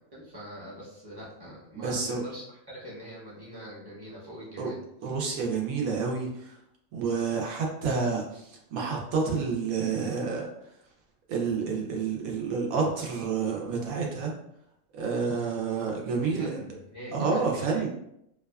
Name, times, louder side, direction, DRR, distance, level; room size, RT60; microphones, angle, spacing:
voice 1, 0.1-4.8 16.2-17.9, equal, 25° right, -7 dB, 0.6 m, -43 dB
voice 2, 1.8-2.2 4.6-4.7 5.0-6.5 6.9-10.5 11.3-14.3 14.9-16.5 17.1-17.9, right 5 dB, 90° right, -1 dB, 1.1 m, -29 dB
2.6 x 2.3 x 2.2 m, 0.79 s
omnidirectional pair, 1.4 m